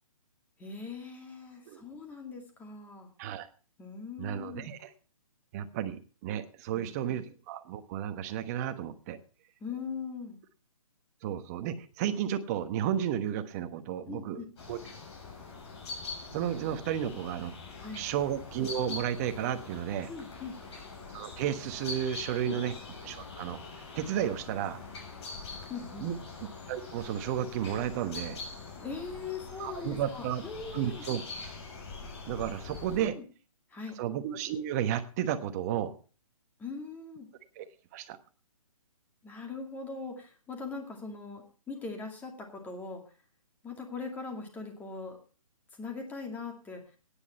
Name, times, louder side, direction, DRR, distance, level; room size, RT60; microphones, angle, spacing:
voice 1, 0.6-3.1 3.8-4.7 6.7-7.2 9.6-10.4 14.1-14.5 17.0-17.1 17.8-18.0 20.1-20.6 22.4-22.6 25.7-26.1 28.8-31.0 33.0-33.3 33.7-34.0 36.6-37.3 39.2-43.0 43.6-45.2 45.7-46.8, left 4 dB, 10° left, 3 dB, 2.4 m, -41 dB
voice 2, 4.2-4.9 5.5-9.2 11.2-14.4 14.7-14.8 16.3-17.5 17.9-20.1 21.1-22.7 23.0-23.6 23.9-24.8 26.0-26.2 26.7-28.4 29.6-30.4 30.7-31.2 32.3-33.2 34.0-35.9 37.6-37.7 37.9-38.2, right 10 dB, 30° right, 9 dB, 1.2 m, -32 dB
sound 1, 14.6-33.1, left 3 dB, 50° left, 7.2 m, -44 dB
16.0 x 10.0 x 4.2 m, 0.38 s
hypercardioid pair, 150°, 18 cm